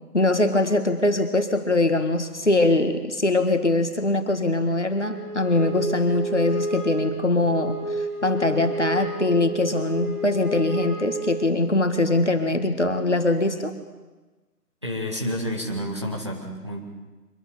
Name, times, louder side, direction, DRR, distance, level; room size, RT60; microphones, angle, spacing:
voice 1, 0.1-13.7, left 2 dB, 45° left, 7 dB, 2.0 m, -22 dB
Wind instrument woodwind instrument, 5.0-11.8, right 2 dB, 80° right, 6.1 m, -30 dB
voice 2, 14.8-16.8, equal, 20° right, -2 dB, 1.7 m, -29 dB
24.5 x 20.5 x 6.9 m, 1.2 s
figure-of-eight pair, 175°, 48 cm